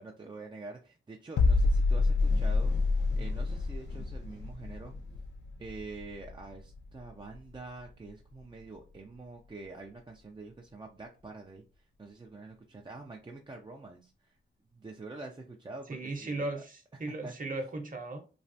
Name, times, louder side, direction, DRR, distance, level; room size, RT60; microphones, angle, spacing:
voice 1, 0.0-4.9 5.6-14.4 14.7-16.5 17.2-17.3, right 3 dB, 20° right, 0.5 m, -46 dB
sound 1, 1.4-7.1 7.3-7.6, left 3 dB, 85° left, 0.4 m, -28 dB
sound 2, 2.2-5.7, left 1 dB, 55° left, 1.2 m, -50 dB
voice 2, 15.9-18.2, right 2 dB, 40° right, 0.9 m, -36 dB
3.2 x 2.3 x 2.6 m
cardioid pair, 50°, 21 cm